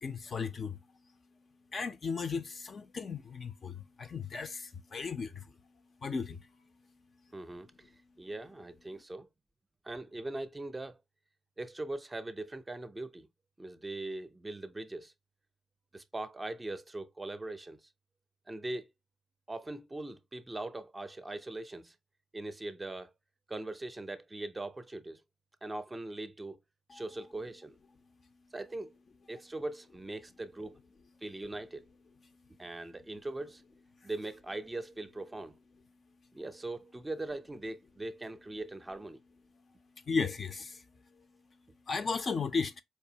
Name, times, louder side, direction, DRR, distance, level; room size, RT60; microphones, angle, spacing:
voice 1, 0.0-0.8 1.7-5.5 6.0-6.5 26.9-27.0 34.0-34.1 40.1-40.8 41.9-42.8, left 5 dB, 40° left, 0.5 m, -35 dB
voice 2, 7.3-7.9 8.2-9.3 9.8-11.0 11.6-13.3 13.6-15.1 15.9-17.8 18.5-18.9 19.5-21.9 22.3-23.1 23.5-25.2 25.6-26.6 26.9-27.8 28.5-28.9 29.3-30.8 31.2-31.8 32.6-33.6 34.0-35.6 36.3-39.2, right 2 dB, 15° right, 0.5 m, -40 dB
4.5 x 2.6 x 2.7 m
cardioid pair, 90°, 0 cm